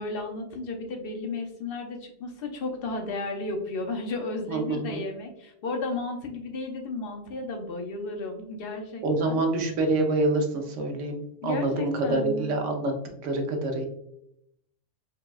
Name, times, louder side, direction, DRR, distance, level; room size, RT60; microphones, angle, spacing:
voice 1, 0.0-9.4 11.4-12.6, left 3 dB, 60° left, 3 dB, 0.7 m, -33 dB
voice 2, 4.5-5.0 9.0-12.9 13.2-13.9, right 2 dB, 75° right, 3 dB, 1.0 m, -26 dB
4.8 x 2.2 x 2.3 m, 0.77 s
omnidirectional pair, 1.3 m